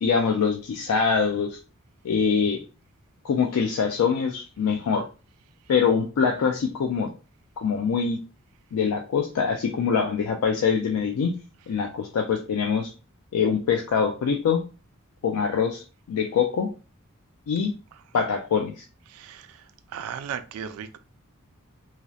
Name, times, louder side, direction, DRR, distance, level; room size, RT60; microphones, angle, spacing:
voice 1, 0.0-1.6 2.0-2.6 3.2-5.0 5.7-7.1 7.6-8.2 8.7-11.3 11.7-12.9 13.3-14.6 15.2-15.8 16.1-16.7 17.5-17.7 18.1-18.8, left 6 dB, 85° left, 0.3 m, -24 dB
voice 2, 19.1-19.6 19.9-21.0, right 8 dB, 70° right, 0.3 m, -36 dB
2.7 x 2.0 x 2.3 m
head